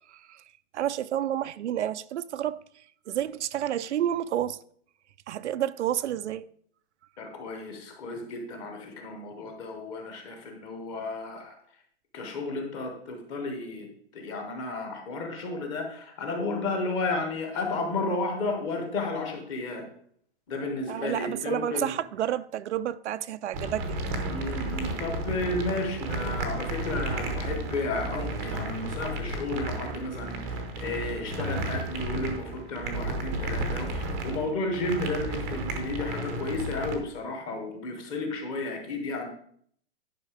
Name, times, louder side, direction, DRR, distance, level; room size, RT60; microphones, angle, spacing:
voice 1, 0.7-2.6 3.1-4.6 5.3-6.4 20.9-23.9, right 11 dB, 85° right, 0.6 m, -30 dB
voice 2, 7.2-11.5 12.1-13.9 14.1-19.9 20.5-22.0 24.3-39.3, left 2 dB, 15° left, 0.8 m, -33 dB
sound 1, 23.5-36.9, right 2 dB, 15° right, 0.6 m, -33 dB
10.5 x 5.4 x 4.9 m
hypercardioid pair, 175°, 33 cm